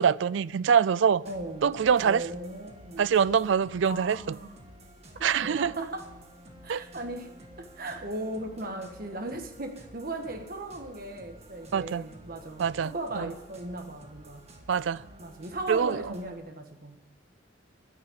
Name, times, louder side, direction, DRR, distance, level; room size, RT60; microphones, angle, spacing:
voice 1, 0.0-1.2 1.6-2.2 3.0-4.2 5.2-5.7 6.7-6.8 11.7-12.0 12.6-13.3 14.7-15.0 15.7-16.0, right 7 dB, 70° right, 0.4 m, -24 dB
sound 1, 1.2-16.3, right 1 dB, 35° right, 1.7 m, -51 dB
voice 2, 1.2-1.7 2.0-3.1 3.8-4.6 5.2-6.1 6.6-7.3 7.6-14.5 15.2-17.0, right 2 dB, 50° right, 1.5 m, -37 dB
10.0 x 9.0 x 9.6 m
head